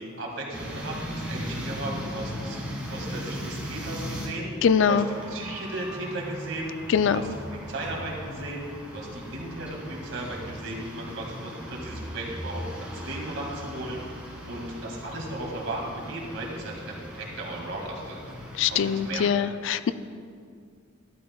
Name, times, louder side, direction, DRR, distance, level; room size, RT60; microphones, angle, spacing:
voice 1, 0.0-2.6 2.9-5.0 5.3-8.7 8.9-14.0 14.4-18.3 18.7-19.3, right 1 dB, 70° right, -2 dB, 2.1 m, -36 dB
sound 1, 0.5-4.3 4.6-19.2, equal, 5° right, 1.8 m, -38 dB
voice 2, 4.6-5.1 6.9-7.2 18.6-19.9, left 7 dB, 65° left, 13 dB, 0.3 m, -22 dB
12.0 x 11.5 x 2.3 m, 2.2 s
head